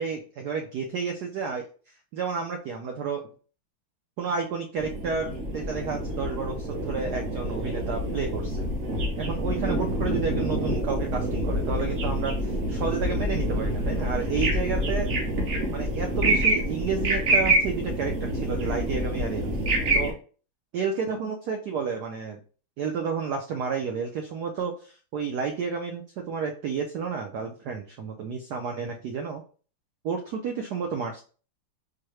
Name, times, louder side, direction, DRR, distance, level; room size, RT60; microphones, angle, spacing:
voice 1, 0.0-1.7 2.1-3.2 4.2-8.7 9.2-15.1 15.7-19.5 19.9-20.1 20.7-22.4 22.8-29.4 30.0-31.2, right 5 dB, 85° right, 2 dB, 0.8 m, -31 dB
sound 1, 4.8-20.1, right 1 dB, 50° right, 0.8 m, -27 dB
4.6 x 2.1 x 3.0 m, 0.38 s
omnidirectional pair, 2.3 m